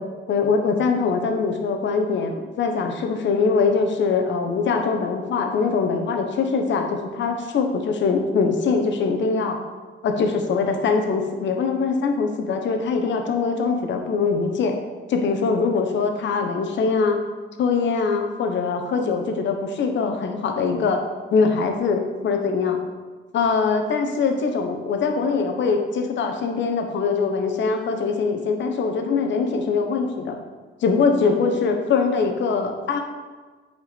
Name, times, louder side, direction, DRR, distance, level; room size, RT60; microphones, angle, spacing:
voice 1, 0.3-9.6 10.0-14.8 15.1-17.2 17.6-21.0 21.3-22.8 23.3-30.4 30.8-33.0, left 4 dB, 65° left, 4 dB, 1.1 m, -22 dB
8.4 x 4.8 x 5.2 m, 1.4 s
cardioid pair, 90°, 20 cm